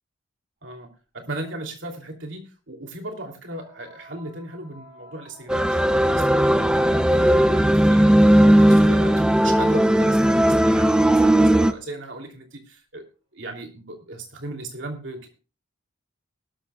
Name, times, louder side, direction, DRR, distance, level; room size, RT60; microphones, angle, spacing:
voice 1, 1.1-8.1 8.4-13.0 13.3-15.3, right 2 dB, 60° right, 3 dB, 3.0 m, -36 dB
sound 1, 3.4-9.6 11.0-11.1 12.0-12.1, right 3 dB, 35° right, 7.4 m, -49 dB
sound 2, 5.5-11.7, right 1 dB, 5° right, 0.5 m, -17 dB
18.5 x 13.0 x 2.3 m, 0.34 s
head